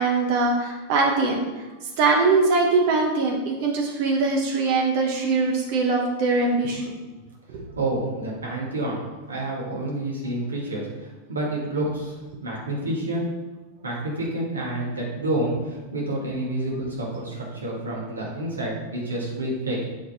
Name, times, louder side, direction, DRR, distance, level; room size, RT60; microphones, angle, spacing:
voice 1, 0.0-1.4 2.0-6.8 7.5-7.6, right 3 dB, 45° right, 0 dB, 1.1 m, -22 dB
voice 2, 7.8-12.2 12.4-13.3 13.8-19.9, right 1 dB, 75° right, -3 dB, 1.9 m, -29 dB
7.2 x 4.6 x 4.2 m, 1.2 s
figure-of-eight pair, 90°, 0 cm